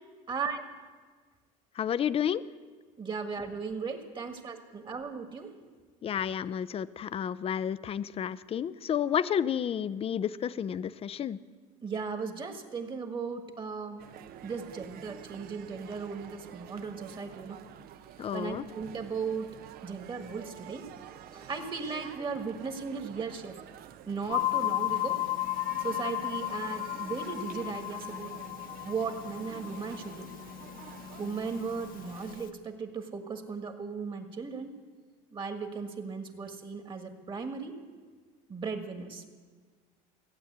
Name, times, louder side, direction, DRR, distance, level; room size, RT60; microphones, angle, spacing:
voice 1, 0.3-0.6 3.0-5.5 11.8-14.0 14.4-17.6 18.3-19.6 19.8-20.9 21.3-23.6 24.0-25.2 25.8-28.3 28.8-30.3 31.2-34.7 35.3-37.8 38.5-39.3, right 5 dB, 25° right, 6 dB, 1.6 m, -36 dB
voice 2, 1.8-2.4 6.0-11.4 18.2-18.6, left 8 dB, 30° left, 17 dB, 0.5 m, -31 dB
sound 1, 14.0-32.4, right 10 dB, 55° right, 0.8 m, -49 dB
sound 2, 24.3-32.5, left 15 dB, 50° left, 0.9 m, -35 dB
16.0 x 8.7 x 8.0 m, 1.5 s
supercardioid pair, 100°, 18 cm